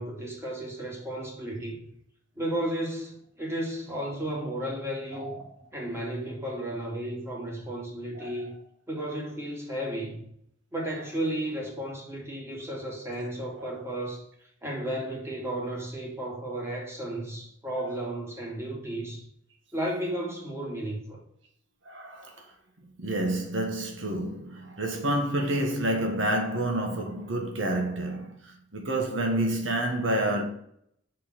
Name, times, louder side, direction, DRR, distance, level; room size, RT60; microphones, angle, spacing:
voice 1, 0.0-1.9 2.3-5.3 5.7-8.5 8.9-10.2 10.7-14.2 14.6-19.2 19.7-21.2, right 1 dB, 15° right, 2.6 m, -33 dB
voice 2, 21.8-22.4 23.0-30.4, right 1 dB, 75° right, 1.5 m, -29 dB
6.3 x 5.6 x 6.3 m
head